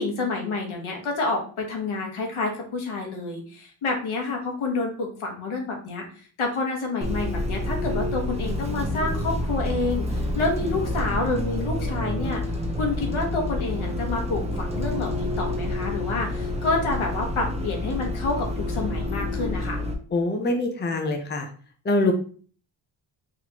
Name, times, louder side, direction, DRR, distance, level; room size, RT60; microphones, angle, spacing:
voice 1, 0.0-12.4 12.8-19.8, left 3 dB, 80° left, 1 dB, 1.3 m, -28 dB
Bus, 7.0-19.9, left 1 dB, 15° right, 0.7 m, -28 dB
voice 2, 20.1-21.5 21.8-22.1, left 2 dB, 20° left, 3 dB, 0.6 m, -24 dB
4.2 x 3.1 x 2.9 m, 0.43 s
cardioid pair, 90°, 49 cm